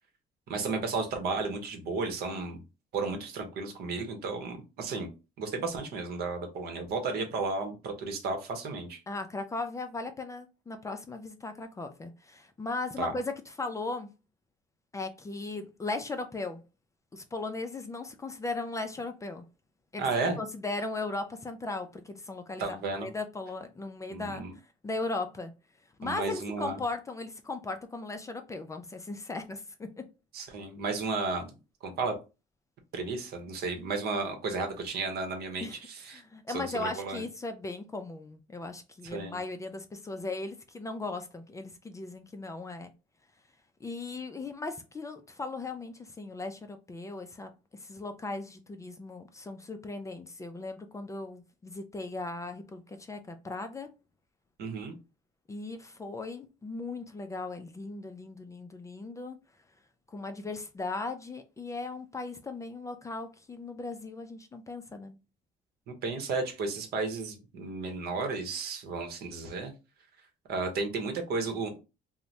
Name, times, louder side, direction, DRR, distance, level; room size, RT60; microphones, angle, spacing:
voice 1, 0.5-2.6 2.9-5.1 5.4-9.0 13.0-13.1 20.0-20.4 22.6-23.1 24.1-24.5 26.0-26.8 30.3-31.5 31.8-32.2 32.9-36.2 36.5-37.2 39.1-39.4 54.6-54.9 65.9-69.7 70.5-71.8, right 3 dB, 70° right, 0.8 m, -33 dB
voice 2, 9.1-14.1 14.9-16.6 17.1-19.4 19.9-20.1 20.4-24.4 24.8-25.5 26.0-30.0 35.6-35.8 36.1-42.9 43.8-47.5 47.8-53.9 55.5-59.4 60.1-65.2, left 3 dB, 20° left, 0.3 m, -37 dB
2.6 x 2.1 x 3.1 m
cardioid pair, 110°, 17 cm